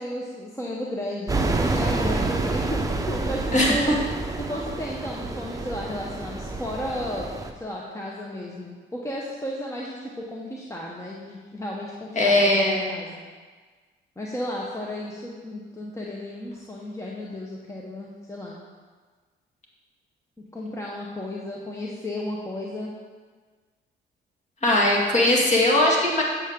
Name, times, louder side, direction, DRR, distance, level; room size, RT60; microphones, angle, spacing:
voice 1, 0.0-3.9 4.4-7.3 7.6-13.2 14.2-18.6 20.5-22.9, left 1 dB, 15° left, -3 dB, 1.0 m, -33 dB
sound 1, 1.3-7.5, right 3 dB, 15° right, 0.7 m, -28 dB
voice 2, 12.2-12.9 24.6-26.2, left 1 dB, 35° left, -3 dB, 2.1 m, -20 dB
8.1 x 7.0 x 3.7 m, 1.5 s
cardioid pair, 90°, 20 cm